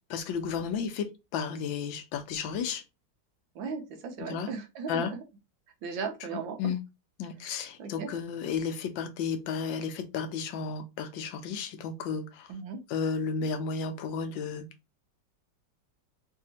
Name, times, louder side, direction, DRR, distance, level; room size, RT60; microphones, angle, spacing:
voice 1, 0.1-2.8 4.2-4.5 4.9-5.1 6.6-6.8 7.2-12.5 12.9-14.7, left 6 dB, 80° left, 1.4 m, -33 dB
voice 2, 3.5-5.2 5.8-6.7 7.8-8.1 12.5-12.8, right 5 dB, 80° right, 1.6 m, -37 dB
4.1 x 2.7 x 2.7 m
omnidirectional pair, 2.1 m